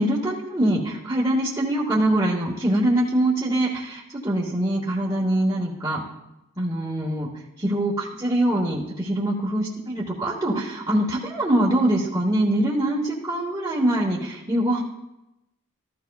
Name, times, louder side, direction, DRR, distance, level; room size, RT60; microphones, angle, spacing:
voice 1, 0.0-6.0 6.6-7.3 7.6-14.8, right 1 dB, 15° right, -6 dB, 1.2 m, -23 dB
14.0 x 13.0 x 2.4 m, 0.93 s
head